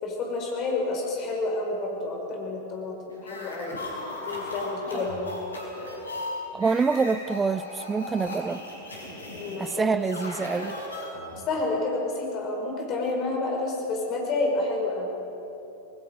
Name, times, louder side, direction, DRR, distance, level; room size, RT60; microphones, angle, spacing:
voice 1, 0.0-3.9 4.3-5.4 9.3-9.9 11.5-15.1, left 2 dB, 35° left, 0 dB, 5.2 m, -29 dB
sound 1, 3.2-11.5, left 1 dB, 75° left, 4.7 m, -37 dB
voice 2, 6.5-8.6 9.6-10.8, right 4 dB, 15° right, 16 dB, 0.6 m, -26 dB
27.0 x 19.5 x 5.5 m, 2.9 s
figure-of-eight pair, 90°, 0 cm